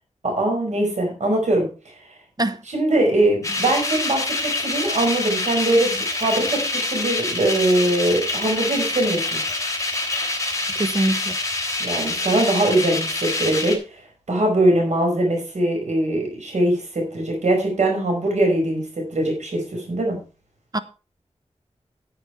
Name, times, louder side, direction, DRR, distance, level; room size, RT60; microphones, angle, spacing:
voice 1, 0.2-1.7 2.7-9.4 11.8-14.0 14.3-20.2, right 1 dB, 85° right, 5.3 m, -21 dB
sound 1, 3.4-13.8, left 2 dB, 30° left, 3.1 m, -26 dB
voice 2, 10.7-11.4 20.7-20.8, right 1 dB, 35° right, 1.0 m, -23 dB
10.5 x 8.5 x 4.6 m
wide cardioid pair, 60°, 12 cm